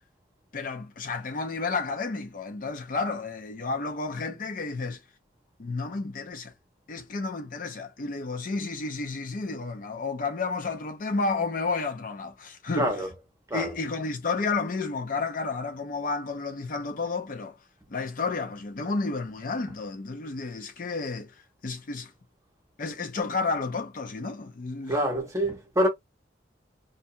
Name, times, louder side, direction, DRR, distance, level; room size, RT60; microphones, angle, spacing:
voice 1, 0.5-5.0 5.6-6.5 6.9-12.9 13.5-17.6 17.9-21.3 21.6-22.1 22.8-25.0, left 4 dB, 45° left, 0.5 m, -31 dB
voice 2, 12.8-13.1 13.5-13.7 24.9-25.9, equal, 15° right, 0.8 m, -26 dB
2.7 x 2.2 x 2.6 m
head